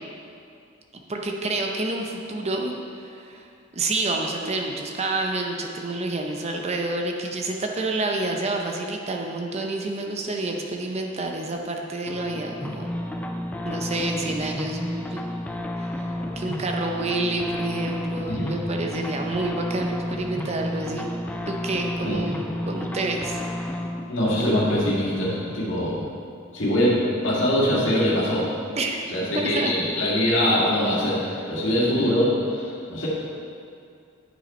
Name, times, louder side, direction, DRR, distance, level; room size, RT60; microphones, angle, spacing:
voice 1, 0.9-3.4 3.7-12.9 13.6-15.2 15.8-21.1 21.5-23.4 28.7-29.0 29.3-29.7, right 2 dB, 30° right, 2 dB, 0.6 m, -29 dB
sound 1, 12.1-26.2, left 1 dB, 10° left, 0.4 m, -32 dB
voice 2, 24.1-26.0 26.5-26.9 27.2-28.5 29.1-33.1, left 1 dB, 65° left, -6 dB, 2.1 m, -23 dB
9.9 x 5.6 x 4.3 m, 2.4 s
head